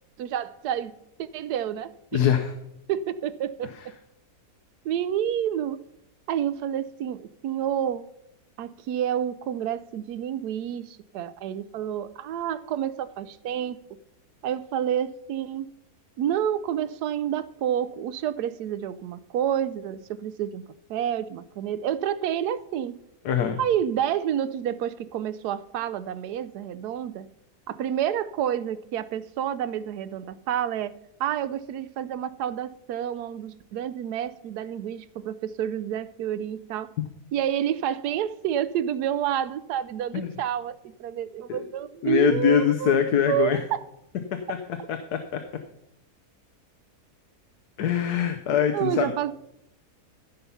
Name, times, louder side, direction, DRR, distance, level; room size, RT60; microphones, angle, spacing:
voice 1, 0.2-0.9 1.2-2.2 2.9-3.9 4.8-5.8 6.3-8.1 8.6-13.8 14.4-15.7 16.2-20.6 20.9-23.0 23.6-27.3 27.7-36.9 37.3-42.9 43.3-43.8 48.7-49.3, right 10 dB, 80° right, 1.1 m, -29 dB
voice 2, 2.1-2.5 3.8-3.9 23.2-23.6 40.1-40.3 41.5-41.7 42.0-43.6 44.3-45.4 47.8-49.1, left 8 dB, 75° left, 1.3 m, -23 dB
15.5 x 5.8 x 5.5 m
omnidirectional pair, 1.7 m